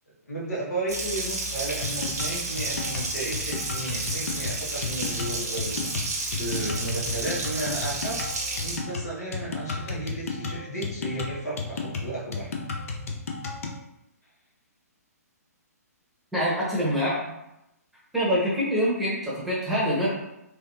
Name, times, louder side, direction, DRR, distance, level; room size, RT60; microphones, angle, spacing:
voice 1, 0.2-5.9 6.3-8.2 8.6-12.5, right 2 dB, 80° left, -5 dB, 1.3 m, -33 dB
Water tap faucet, 0.9-8.8, right 3 dB, 70° right, 0.7 m, -31 dB
sound 1, 1.8-13.8, left 4 dB, 60° left, 0.5 m, -33 dB
voice 2, 16.3-17.2 18.1-20.1, equal, ahead, -7 dB, 0.9 m, -25 dB
3.3 x 2.5 x 2.5 m, 0.87 s
figure-of-eight pair, 130°, 9 cm